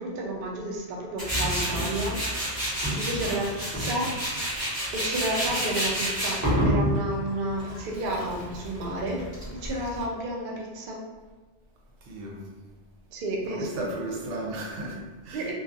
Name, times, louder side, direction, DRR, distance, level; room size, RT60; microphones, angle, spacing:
voice 1, 0.0-2.2 2.9-4.6 4.9-9.2 9.5-11.0 13.1-13.8 15.3-15.5, right 1 dB, 60° right, -1 dB, 0.6 m, -31 dB
Tools, 1.2-10.0, equal, 20° right, 0.9 m, -29 dB
voice 2, 12.0-12.4 13.4-15.5, right 1 dB, 90° right, -2 dB, 0.9 m, -35 dB
2.4 x 2.3 x 2.4 m, 1.3 s
omnidirectional pair, 1.2 m